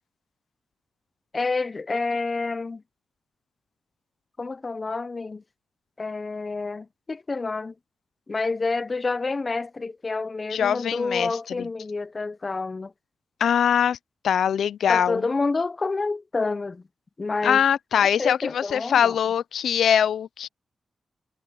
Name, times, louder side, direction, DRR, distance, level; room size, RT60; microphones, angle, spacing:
voice 1, 1.3-2.8 4.4-5.4 6.0-7.7 8.3-12.9 14.9-16.8 17.2-17.6 17.9-19.2, left 3 dB, 35° left, 0.7 m, -28 dB
voice 2, 10.5-11.3 13.4-14.0 14.2-15.2 17.4-20.5, left 8 dB, 85° left, 0.4 m, -22 dB
cardioid pair, 75°, 0 cm